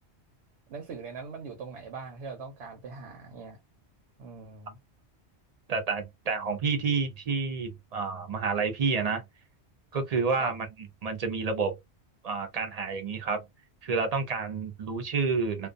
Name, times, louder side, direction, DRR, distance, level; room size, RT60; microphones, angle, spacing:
voice 1, 0.7-3.6 4.2-4.8 10.4-10.5, right 4 dB, 80° right, 1.0 m, -41 dB
voice 2, 5.7-9.2 9.9-10.7 11.0-11.7 12.2-13.4 13.8-15.7, right 4 dB, 45° right, 0.5 m, -29 dB
2.3 x 2.2 x 2.4 m
omnidirectional pair, 1.1 m